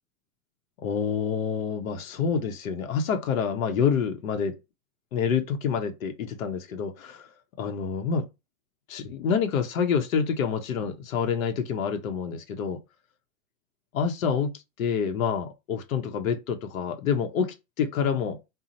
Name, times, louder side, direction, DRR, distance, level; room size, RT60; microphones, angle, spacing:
voice 1, 0.8-4.6 5.1-7.3 7.6-8.3 8.9-12.8 13.9-18.4, left 6 dB, 90° left, 0.8 m, -27 dB
2.6 x 2.1 x 4.0 m
supercardioid pair, 135°, 40 cm